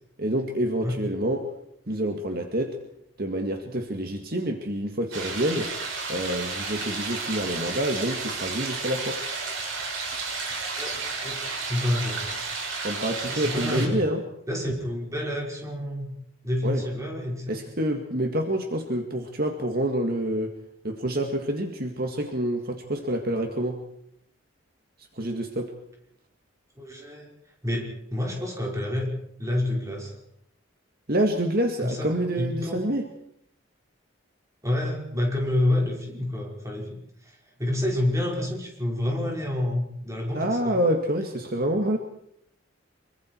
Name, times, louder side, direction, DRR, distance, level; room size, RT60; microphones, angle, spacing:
voice 1, 0.2-1.5 1.9-2.8 3.2-5.7 6.1-9.2 12.8-14.2 16.6-16.8 17.5-20.5 20.8-23.8 25.2-25.7 31.1-33.1 40.3-42.0, right 1 dB, 50° right, 4 dB, 2.0 m, -27 dB
sound 1, 5.1-13.9, right 4 dB, 80° right, 6.4 m, -32 dB
voice 2, 10.8-12.2 13.3-14.0 14.5-16.1 16.4-17.7 26.8-27.3 27.6-29.1 29.4-30.1 31.8-32.8 34.6-36.9 37.2-40.8, left 1 dB, 15° right, -1 dB, 5.2 m, -28 dB
25.5 x 24.0 x 4.7 m, 0.75 s
head